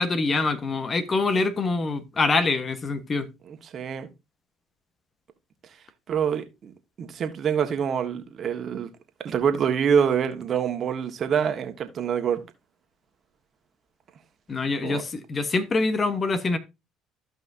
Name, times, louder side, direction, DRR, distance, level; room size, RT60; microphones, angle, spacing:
voice 1, 0.0-3.3 14.5-16.6, left 3 dB, 35° left, 1.2 m, -25 dB
voice 2, 3.7-4.1 6.1-6.7 7.0-8.9 9.2-12.4 14.8-15.0, right 7 dB, 50° right, 1.6 m, -25 dB
14.5 x 5.5 x 2.7 m
hypercardioid pair, 65°, 0 cm